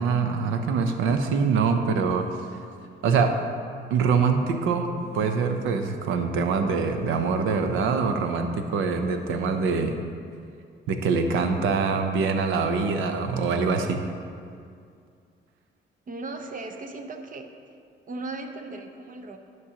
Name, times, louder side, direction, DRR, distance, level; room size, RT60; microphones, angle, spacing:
voice 1, 0.0-2.3 3.0-3.4 3.9-9.9 10.9-14.0, right 5 dB, 90° right, 6 dB, 0.7 m, -24 dB
sound 1, 5.0-6.1 7.0-8.1 9.0-10.1 11.0-12.1 13.0-14.1, left 3 dB, 30° left, 0.6 m, -41 dB
voice 2, 16.1-17.5 18.1-19.4, right 2 dB, 45° right, 5 dB, 0.8 m, -37 dB
12.5 x 6.1 x 2.9 m, 2.3 s
cardioid pair, 90°, 20 cm